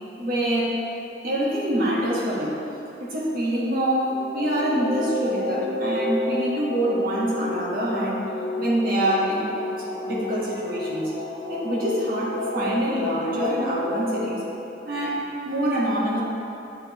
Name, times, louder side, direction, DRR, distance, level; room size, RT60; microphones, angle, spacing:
voice 1, 0.2-0.8 1.2-2.6 3.0-8.3 8.6-9.5 10.0-11.1 11.5-14.4 14.8-16.2, right 1 dB, 50° right, -6 dB, 1.3 m, -25 dB
sound 1, 3.6-14.3, left 2 dB, 85° left, 1.2 m, -30 dB
8.7 x 4.2 x 3.0 m, 2.9 s
head